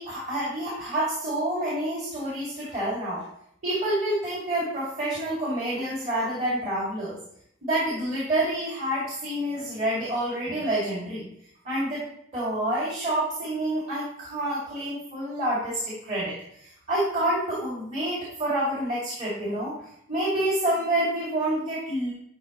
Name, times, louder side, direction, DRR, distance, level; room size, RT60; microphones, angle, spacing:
voice 1, 0.0-3.2 3.6-7.2 7.6-11.2 11.6-12.0 12.3-19.7 20.1-22.1, right 1 dB, 35° right, -8 dB, 2.3 m, -28 dB
11.0 x 4.1 x 3.0 m, 0.68 s
head